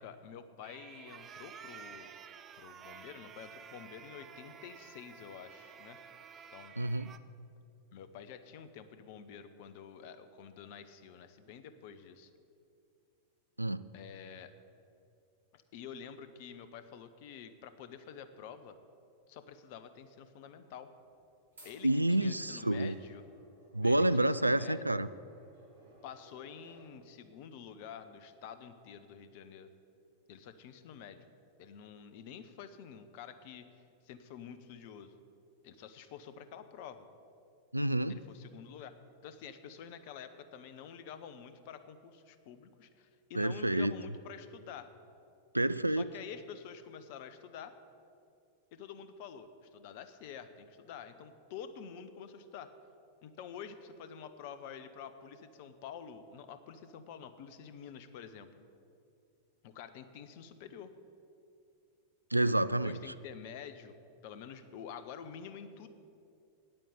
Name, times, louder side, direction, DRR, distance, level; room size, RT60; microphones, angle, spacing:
voice 1, 0.0-2.1 2.6-6.0 6.5-6.8 7.9-12.3 13.9-14.5 15.5-18.8 19.3-20.9 21.6-23.2 23.8-25.0 26.0-29.7 30.3-31.2 31.6-33.7 34.0-35.1 35.6-37.1 38.1-38.9 39.2-44.9 45.9-47.7 48.7-52.7 53.2-58.7 59.6-60.9 62.8-64.0 64.2-65.9, left 7 dB, 50° left, 11 dB, 0.8 m, -48 dB
sound 1, 0.6-7.2, right 7 dB, 25° right, 0.5 m, -52 dB
voice 2, 6.8-7.1 13.6-13.8 21.8-23.0 23.7-25.1 37.7-38.2 43.3-43.9 45.5-46.0 62.3-63.0, right 1 dB, 85° right, 15 dB, 0.3 m, -29 dB
sound 2, 21.0-26.9, right 1 dB, 70° right, 3.5 m, -59 dB
9.3 x 8.8 x 8.6 m, 2.5 s
figure-of-eight pair, 90°, 0 cm